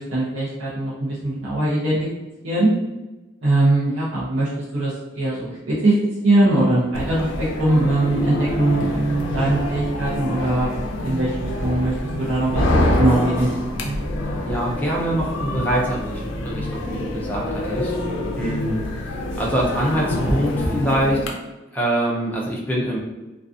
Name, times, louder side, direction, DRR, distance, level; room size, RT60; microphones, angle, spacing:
voice 1, 0.0-2.1 2.4-2.7 3.4-6.0 6.2-7.3 7.6-12.6 13.0-13.5 13.8-14.0, right 2 dB, 70° right, -8 dB, 0.6 m, -21 dB
sound 1, 6.9-21.3, left 1 dB, 75° left, 0.4 m, -26 dB
voice 2, 14.4-18.0 18.3-18.8 19.4-21.3 21.7-23.0, right 1 dB, 10° left, -4 dB, 0.4 m, -24 dB
2.4 x 2.3 x 2.5 m, 1.1 s
head